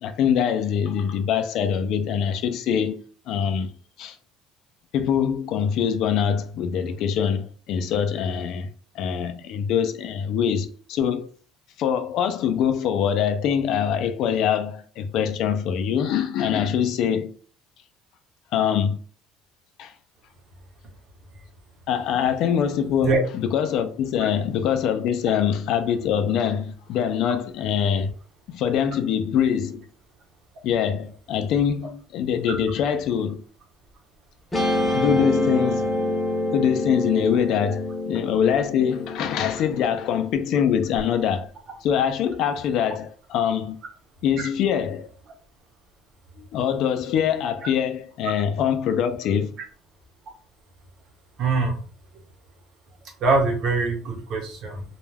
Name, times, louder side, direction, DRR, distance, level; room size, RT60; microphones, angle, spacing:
voice 1, 0.0-3.0 3.3-3.7 4.0-4.2 4.9-8.7 9.0-11.3 11.8-17.3 18.5-19.0 19.8-19.9 21.9-28.1 28.5-29.8 30.6-33.4 34.9-35.9 36.5-41.5 41.8-43.8 44.2-45.1 46.5-49.6, left 8 dB, 60° left, 0.4 m, -24 dB
Guitar, 34.5-41.0, left 1 dB, 15° left, 0.6 m, -27 dB
voice 2, 51.4-51.7 53.2-54.8, right 3 dB, 50° right, 0.9 m, -23 dB
2.2 x 2.2 x 3.3 m
cardioid pair, 130°, 0 cm